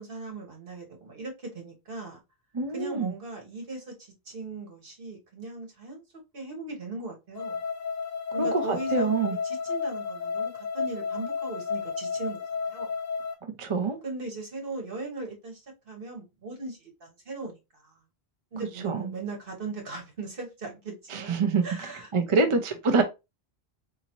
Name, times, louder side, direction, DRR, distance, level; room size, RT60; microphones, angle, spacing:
voice 1, 0.0-2.2 2.7-6.0 6.3-7.6 8.3-12.9 14.0-17.9 18.5-22.6, right 3 dB, 55° right, 1.4 m, -39 dB
voice 2, 2.5-3.1 8.4-9.4 13.6-14.0 18.8-19.1 21.1-21.6 22.1-23.0, right 4 dB, 40° right, 0.5 m, -25 dB
sound 1, 7.3-13.3, left 5 dB, 20° left, 0.7 m, -32 dB
3.9 x 2.8 x 2.9 m
omnidirectional pair, 1.1 m